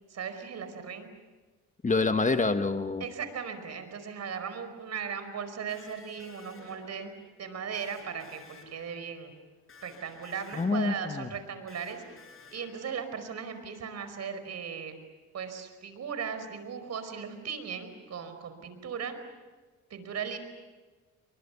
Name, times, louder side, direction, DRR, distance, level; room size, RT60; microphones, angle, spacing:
voice 1, 0.1-1.1 3.0-7.1 7.4-9.3 9.8-12.0 12.5-14.9 15.3-19.1 19.9-20.4, right 7 dB, 60° right, 9 dB, 5.0 m, -37 dB
voice 2, 1.8-3.0 10.6-11.3, left 3 dB, 25° left, 8 dB, 1.5 m, -27 dB
Electric guitar, 5.7-13.4, left 4 dB, 45° left, 6.3 m, -54 dB
29.5 x 24.0 x 7.2 m, 1.3 s
cardioid pair, 90°, 30 cm